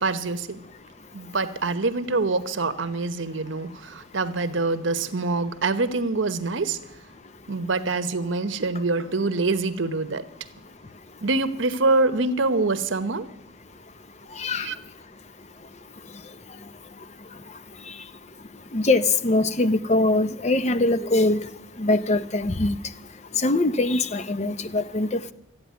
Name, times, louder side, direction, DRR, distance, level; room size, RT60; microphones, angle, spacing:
voice 1, 0.0-0.6 1.1-6.8 7.5-10.3 11.2-13.3 14.6-14.8, right 3 dB, 85° right, 1.0 m, -25 dB
voice 2, 14.4-14.7 18.7-21.4 21.8-22.7 23.4-25.3, left 2 dB, 35° left, 0.7 m, -22 dB
14.0 x 8.9 x 9.5 m
head